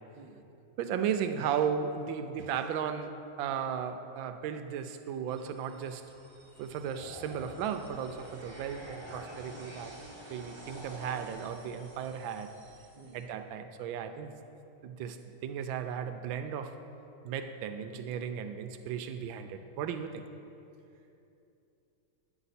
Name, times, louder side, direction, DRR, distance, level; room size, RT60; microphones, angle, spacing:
voice 1, 0.2-0.5 12.9-13.2 20.9-21.1, right 4 dB, 60° right, 1 dB, 0.5 m, -54 dB
voice 2, 0.8-6.1 6.6-9.9 10.3-12.5 13.1-14.3 14.8-16.8 17.2-20.3, right 7 dB, 80° right, 8 dB, 1.3 m, -35 dB
sound 1, 5.3-13.2, equal, 20° right, 1.0 m, -48 dB
10.5 x 8.0 x 4.1 m, 2.8 s
omnidirectional pair, 2.2 m